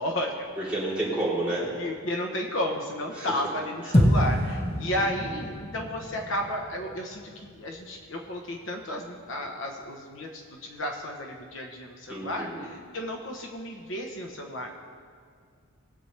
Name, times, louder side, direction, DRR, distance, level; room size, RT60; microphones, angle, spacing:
voice 1, 0.0-0.7 1.8-14.7, left 1 dB, 60° left, 1 dB, 1.0 m, -33 dB
voice 2, 0.6-1.7 3.1-3.3 5.0-5.1 12.1-12.6, right 1 dB, 5° right, -9 dB, 3.4 m, -30 dB
sound 1, 3.9-8.3, equal, 25° left, 1.2 m, -27 dB
21.0 x 8.0 x 3.3 m, 2.1 s
head